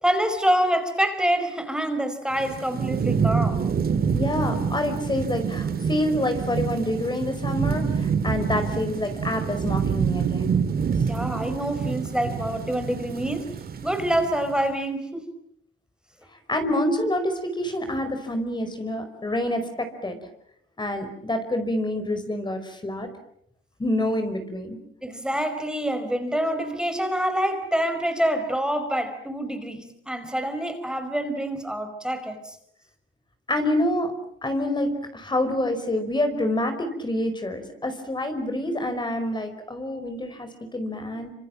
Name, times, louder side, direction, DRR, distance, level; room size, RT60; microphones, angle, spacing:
voice 1, 0.0-3.7 11.1-13.5 13.8-15.2 25.0-32.6, right 1 dB, 5° right, 7 dB, 5.0 m, -26 dB
Thunderstorm / Rain, 2.3-14.6, right 6 dB, 50° right, 2.0 m, -27 dB
voice 2, 4.1-10.5 16.5-20.2 20.8-23.1 23.8-24.8 33.5-34.1 34.4-41.3, left 1 dB, 20° left, 7 dB, 5.0 m, -27 dB
27.0 x 26.5 x 7.6 m, 0.72 s
cardioid pair, 90°, 20 cm